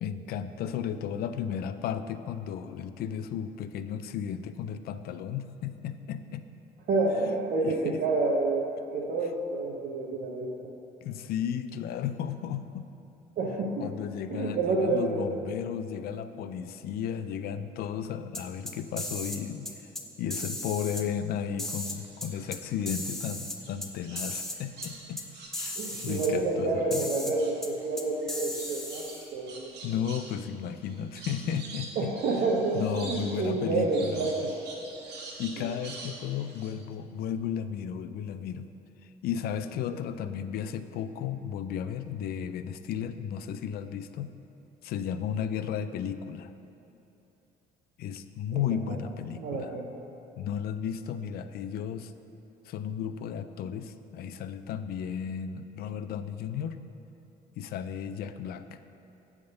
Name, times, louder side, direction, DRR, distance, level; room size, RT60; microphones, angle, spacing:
voice 1, 0.0-6.5 7.6-8.0 11.0-12.9 13.8-19.9 20.2-25.2 25.6-27.1 29.8-32.1 32.7-34.3 35.4-38.7 39.2-44.3 44.8-46.5 48.0-49.7 50.4-52.1 52.7-56.8 57.6-58.8, left 8 dB, 65° left, 11 dB, 0.4 m, -34 dB
voice 2, 6.9-8.7 8.9-10.7 13.4-13.9 14.3-15.3 25.8-29.7 32.0-34.4 35.6-35.7 48.5-49.0 49.4-49.9, right 3 dB, 60° right, -3 dB, 0.8 m, -29 dB
sound 1, 18.3-19.4 19.7-20.0 20.3-21.0 21.6-22.6 22.9-23.9 24.2-24.6 24.8-24.9 25.2-25.3 25.5-26.3 26.9-27.3 27.6-27.7 28.0-29.3, left 1 dB, ahead, 0.6 m, -36 dB
sound 2, 21.8-23.1 23.6-26.9 27.2-36.7, right 3 dB, 80° right, 1.2 m, -46 dB
7.8 x 3.6 x 6.6 m, 2.9 s
cardioid pair, 110°, 17 cm